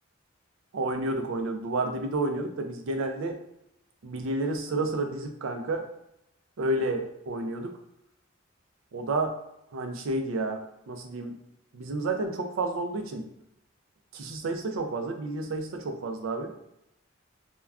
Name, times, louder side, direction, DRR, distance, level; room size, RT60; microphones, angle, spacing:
voice 1, 0.7-3.4 4.0-5.9 6.6-7.7 8.9-9.4 9.7-11.4 11.7-13.2 14.1-16.5, right 2 dB, 85° right, 5 dB, 0.4 m, -30 dB
2.2 x 2.2 x 3.5 m, 0.81 s
head